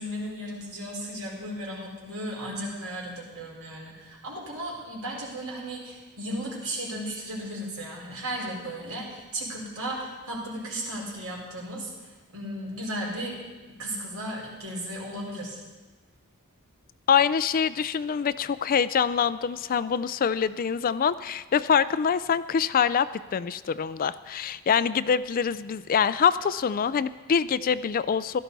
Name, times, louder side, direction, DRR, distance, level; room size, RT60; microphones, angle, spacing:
voice 1, 0.0-13.4 13.8-15.6, right 1 dB, 80° right, -3 dB, 4.6 m, -35 dB
voice 2, 17.1-23.1 23.3-28.4, left 7 dB, 40° left, 15 dB, 0.3 m, -25 dB
16.0 x 12.5 x 4.1 m, 1.3 s
head